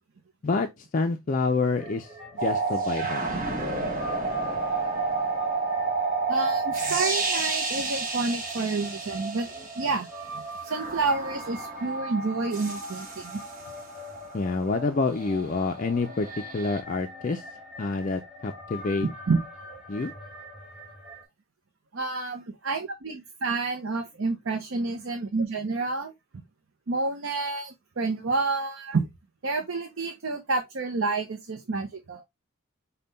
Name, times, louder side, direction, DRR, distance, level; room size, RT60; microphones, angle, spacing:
voice 1, 0.4-2.1 2.4-3.3 14.3-16.3 16.5-17.4 17.8-19.1 19.9-20.1, left 3 dB, 35° left, 0.4 m, -27 dB
sound 1, 1.8-21.2, equal, ahead, 1.7 m, -42 dB
sound 2, 2.4-9.9 10.7-13.7 16.4-16.8, right 3 dB, 35° right, 1.2 m, -30 dB
voice 2, 6.3-9.5 9.8-10.1 10.3-13.4 19.0-19.4 21.9-26.1 26.9-29.1 29.4-32.2, right 3 dB, 65° right, 0.6 m, -29 dB
5.5 x 2.2 x 3.8 m
head